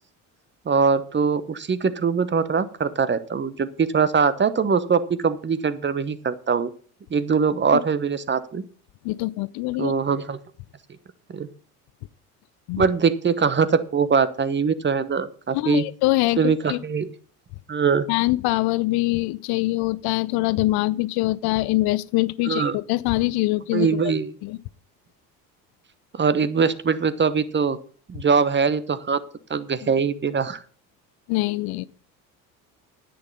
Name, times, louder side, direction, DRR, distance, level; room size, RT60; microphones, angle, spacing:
voice 1, 0.7-6.7 7.1-8.6 9.8-10.4 11.3-11.5 12.8-15.8 16.4-17.1 17.7-18.1 22.5-22.8 23.7-24.3 26.2-27.8 28.1-29.2 29.5-30.6, right 5 dB, 25° right, 15 dB, 1.0 m, -22 dB
voice 2, 9.0-9.9 12.7-12.8 15.5-16.8 18.1-24.1 24.4-24.6 29.8-29.9 31.3-31.9, left 19 dB, 55° left, 19 dB, 0.6 m, -24 dB
10.5 x 8.8 x 5.5 m, 0.43 s
hypercardioid pair, 65°, 45 cm